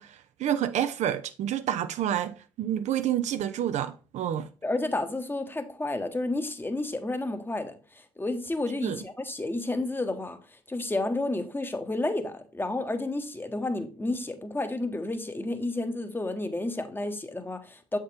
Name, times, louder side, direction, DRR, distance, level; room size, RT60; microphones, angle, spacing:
voice 1, 0.0-4.5 8.8-9.0, right 10 dB, 55° right, 0.4 m, -29 dB
voice 2, 4.6-10.4 10.7-18.0, left 2 dB, 15° left, 1.0 m, -31 dB
7.3 x 4.3 x 3.5 m
hypercardioid pair, 45°, 14 cm